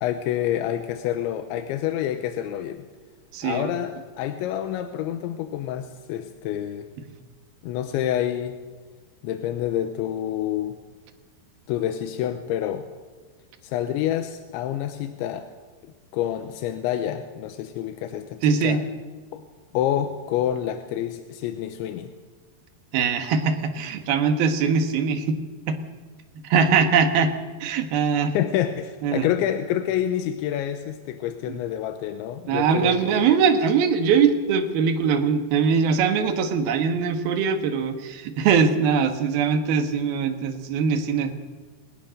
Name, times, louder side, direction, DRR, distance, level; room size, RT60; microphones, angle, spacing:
voice 1, 0.0-2.9 3.4-6.9 7.6-8.5 9.2-10.8 11.7-12.9 13.6-15.5 16.1-18.8 19.3-19.4 19.7-22.1 28.3-33.4, left 11 dB, 85° left, 8 dB, 3.2 m, -28 dB
voice 2, 3.3-3.7 18.4-18.8 22.9-25.4 25.7-25.8 26.4-27.3 27.6-28.4 29.0-29.3 31.5-31.6 32.5-41.3, right 6 dB, 65° right, 7 dB, 3.2 m, -22 dB
22.0 x 19.5 x 6.6 m, 1.4 s
omnidirectional pair, 5.3 m